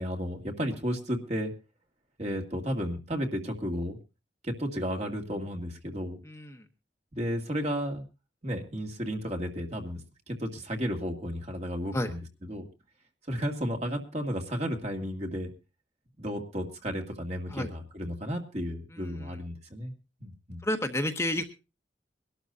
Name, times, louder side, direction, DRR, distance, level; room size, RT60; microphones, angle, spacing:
voice 1, 0.0-1.5 2.2-4.0 4.4-6.2 7.1-8.0 8.4-10.0 10.3-12.7 13.3-15.5 16.2-19.9 20.2-20.6, equal, 35° right, 2 dB, 2.1 m, -33 dB
voice 2, 6.2-6.6 11.9-12.1 17.5-17.7 18.9-19.4 20.6-21.4, left 1 dB, 15° left, 5 dB, 0.9 m, -31 dB
23.0 x 12.5 x 2.6 m, 0.30 s
head